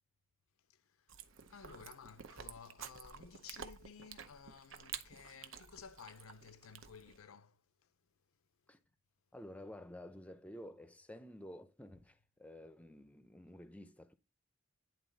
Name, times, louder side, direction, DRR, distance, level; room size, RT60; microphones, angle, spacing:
voice 1, 0.7-1.2 1.5-7.6, left 6 dB, 85° left, 0.5 m, -55 dB
Chewing mastication, 1.1-7.2, right 7 dB, 70° right, 0.8 m, -51 dB
voice 2, 9.3-14.2, left 1 dB, 5° left, 0.6 m, -52 dB
10.0 x 4.0 x 4.0 m
head